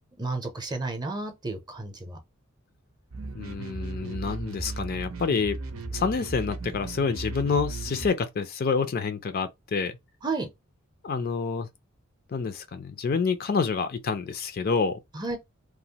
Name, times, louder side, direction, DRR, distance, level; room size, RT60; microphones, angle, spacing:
voice 1, 0.2-2.2 10.2-10.5 15.1-15.4, right 3 dB, 20° right, 0.6 m, -32 dB
sound 1, 3.1-8.1, right 3 dB, 85° right, 0.6 m, -36 dB
voice 2, 3.3-5.6 5.9-9.9 11.0-11.7 12.3-15.0, left 5 dB, 45° left, 0.4 m, -28 dB
2.9 x 2.0 x 2.8 m
head